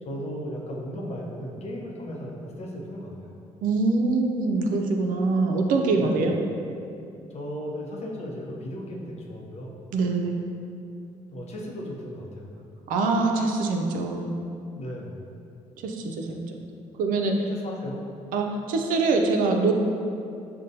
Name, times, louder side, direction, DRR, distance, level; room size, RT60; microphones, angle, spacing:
voice 1, 0.0-3.3 5.9-6.2 7.3-9.7 11.3-12.5 14.7-15.1 17.3-18.0, equal, 50° left, -2 dB, 0.7 m, -36 dB
voice 2, 3.6-6.3 9.9-10.4 12.9-14.3 15.8-16.6 17.0-17.5 18.3-19.7, right 3 dB, 80° right, 3 dB, 0.4 m, -24 dB
5.3 x 2.2 x 2.6 m, 2.6 s
cardioid pair, 75°, 14 cm